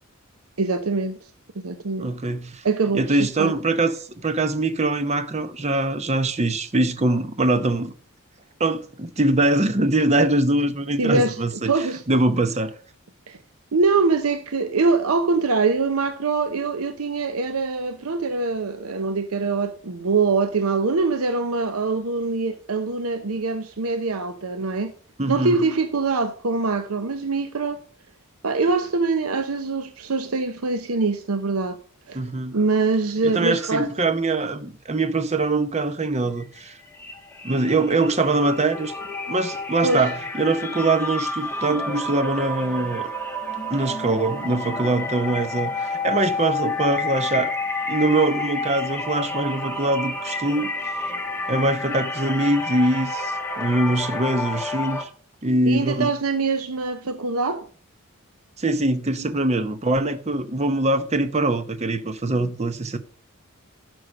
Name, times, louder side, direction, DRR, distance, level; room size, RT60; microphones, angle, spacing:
voice 1, 0.6-1.2 1.6-2.1 2.6-3.5 11.0-11.4 11.6-12.0 13.3-13.4 13.7-24.9 25.3-27.8 28.4-31.8 32.1-32.2 32.5-33.9 39.8-40.0 55.7-57.7, right 3 dB, 85° right, 0.8 m, -23 dB
voice 2, 2.0-2.6 2.9-7.9 8.6-11.7 12.1-12.7 25.2-25.6 32.1-32.6 33.2-36.8 37.4-38.9 39.3-43.1 43.7-47.5 47.9-51.1 51.5-55.1 55.4-56.2 58.6-63.0, right 2 dB, 30° right, 0.8 m, -23 dB
sound 1, 36.4-36.7 36.9-55.0, left 2 dB, 10° left, 1.2 m, -29 dB
11.0 x 6.3 x 5.2 m
head